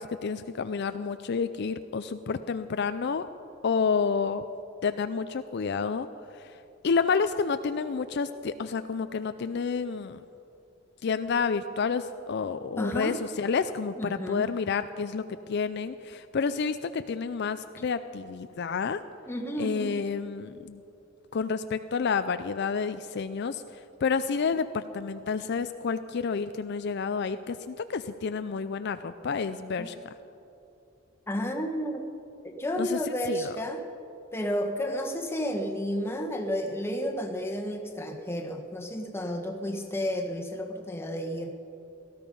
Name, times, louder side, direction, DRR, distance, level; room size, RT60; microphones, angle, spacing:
voice 1, 0.0-3.3 3.6-4.4 4.8-6.1 6.3-6.6 6.8-10.2 11.0-19.0 19.6-20.8 21.3-29.9 32.8-33.0 33.3-33.6, left 5 dB, 55° left, 11 dB, 0.4 m, -29 dB
voice 2, 12.8-13.2 14.0-14.5 19.3-20.0 29.8-29.9 31.3-32.0 32.4-33.8 34.3-41.5, equal, 10° left, 3 dB, 1.3 m, -31 dB
18.0 x 14.0 x 5.4 m, 2.8 s
head